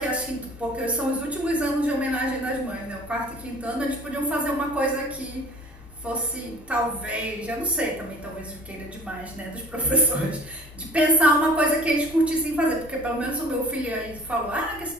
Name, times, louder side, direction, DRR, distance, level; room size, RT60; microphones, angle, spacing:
voice 1, 0.0-5.5 6.0-14.9, right 1 dB, 5° right, 2.4 m, -25 dB
7.5 x 5.5 x 3.2 m
cardioid pair, 90°, 20 cm